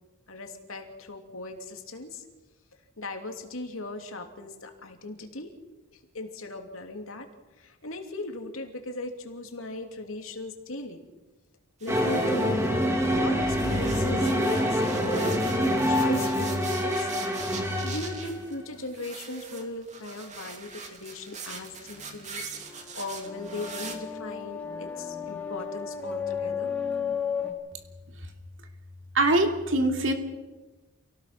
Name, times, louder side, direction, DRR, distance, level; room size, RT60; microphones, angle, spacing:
voice 1, 0.3-2.2 3.0-5.5 5.9-7.3 7.6-11.0 11.8-12.8 13.1-17.2 17.5-26.7, left 2 dB, 70° left, 4 dB, 2.9 m, -38 dB
sound 1, 11.8-13.2 13.5-24.0, right 5 dB, 35° right, 2.7 m, -42 dB
sound 2, 11.9-18.4, equal, 10° right, 2.2 m, -26 dB
sound 3, 21.7-27.5, left 6 dB, 5° left, 2.7 m, -34 dB
voice 2, 29.1-30.1, right 2 dB, 60° right, 4 dB, 2.9 m, -23 dB
28.0 x 18.0 x 6.0 m, 1.2 s
head